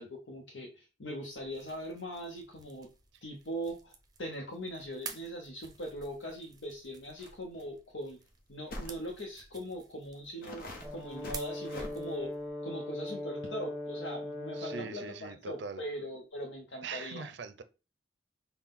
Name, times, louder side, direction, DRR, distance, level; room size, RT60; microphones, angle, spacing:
voice 1, 0.0-2.9 3.2-3.9 4.2-8.2 8.5-12.3 12.6-17.3, equal, 75° left, 0.8 m, -41 dB
sound 1, 1.3-12.5, right 5 dB, 20° right, 0.6 m, -52 dB
sound 2, 7.2-7.3 7.6-7.7 8.7-9.0 9.7-9.8 10.4-11.9, left 1 dB, 50° left, 1.0 m, -43 dB
Brass instrument, 10.8-15.0, left 1 dB, 5° left, 1.1 m, -40 dB
voice 2, 14.5-15.8 16.8-17.6, right 5 dB, 65° right, 0.5 m, -42 dB
5.8 x 2.2 x 3.6 m
head